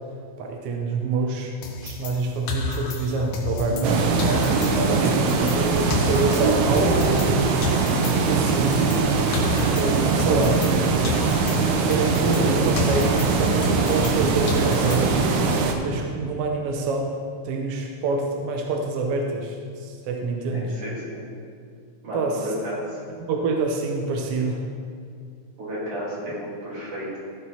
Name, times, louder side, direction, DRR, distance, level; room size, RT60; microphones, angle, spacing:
voice 1, 0.4-1.5 1.8-4.0 4.9-7.6 8.3-8.8 9.5-10.6 11.8-13.6 13.9-15.2 15.8-17.2 17.4-20.7 22.1-22.5 23.2-24.6, right 3 dB, 70° right, 1 dB, 1.4 m, -26 dB
sound 1, 1.6-3.9 4.2-7.4 7.6-10.8 11.0-14.2 14.5-15.3, left 3 dB, 85° left, 2.3 m, -32 dB
sound 2, 3.7-8.3, left 4 dB, 50° left, 2.7 m, -36 dB
sound 3, 3.8-15.7, right 4 dB, 90° right, 2.3 m, -21 dB
voice 2, 4.6-5.0 20.5-21.2 22.0-23.0 25.6-27.2, equal, 50° right, -8 dB, 3.8 m, -33 dB
14.0 x 6.0 x 4.1 m, 2.3 s
omnidirectional pair, 3.4 m